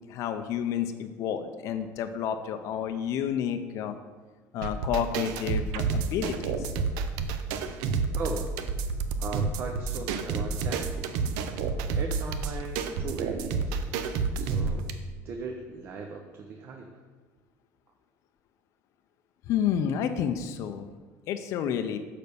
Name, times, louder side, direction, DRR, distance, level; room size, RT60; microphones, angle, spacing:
voice 1, 0.1-4.0 4.5-6.7 19.5-20.9 21.3-22.0, left 9 dB, 50° left, 8 dB, 0.5 m, -30 dB
sound 1, 4.6-14.9, right 5 dB, 85° right, 0.7 m, -30 dB
voice 2, 8.1-8.5 9.2-11.2 12.0-13.8 14.4-14.8 15.2-17.0, right 4 dB, 35° right, 2 dB, 0.7 m, -38 dB
6.7 x 5.2 x 6.8 m, 1.3 s
cardioid pair, 170°, 7 cm